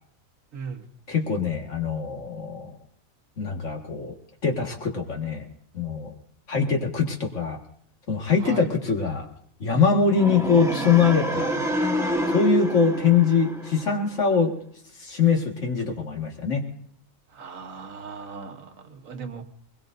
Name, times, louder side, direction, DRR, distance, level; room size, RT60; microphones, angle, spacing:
voice 1, 0.5-0.8 8.4-8.7 17.3-19.4, right 5 dB, 80° right, 1.6 m, -38 dB
voice 2, 1.1-2.7 3.4-4.1 4.4-5.4 5.7-6.1 6.5-7.6 8.1-9.3 9.6-11.5 12.3-14.5 15.0-16.6, left 6 dB, 65° left, 2.2 m, -23 dB
sound 1, 10.1-14.2, right 1 dB, ahead, 1.4 m, -28 dB
22.0 x 21.0 x 2.6 m
omnidirectional pair, 1.4 m